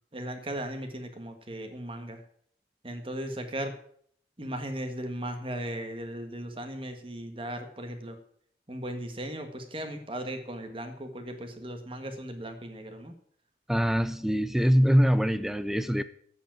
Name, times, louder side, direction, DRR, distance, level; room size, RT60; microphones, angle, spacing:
voice 1, 0.1-2.2 2.8-3.7 4.4-8.2 8.7-13.1, right 1 dB, 30° right, 6 dB, 1.5 m, -37 dB
voice 2, 13.7-16.0, equal, ahead, 13 dB, 0.5 m, -23 dB
8.5 x 7.7 x 8.9 m, 0.62 s
head